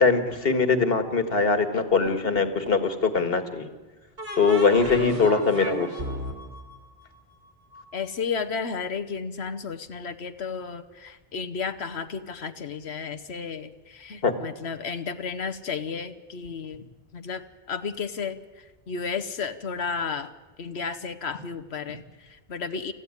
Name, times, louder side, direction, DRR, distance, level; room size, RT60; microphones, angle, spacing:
voice 1, 0.0-3.7 4.4-5.9 14.2-14.3, left 4 dB, 65° left, 9 dB, 2.0 m, -22 dB
sound 1, 2.1-2.9 4.2-7.8, right 2 dB, 70° right, 3.3 m, -35 dB
voice 2, 7.9-16.8 17.1-17.4 17.7-20.3 20.6-22.9, left 5 dB, 80° left, 9 dB, 1.2 m, -33 dB
25.5 x 15.0 x 9.7 m, 1.2 s
omnidirectional pair, 1.1 m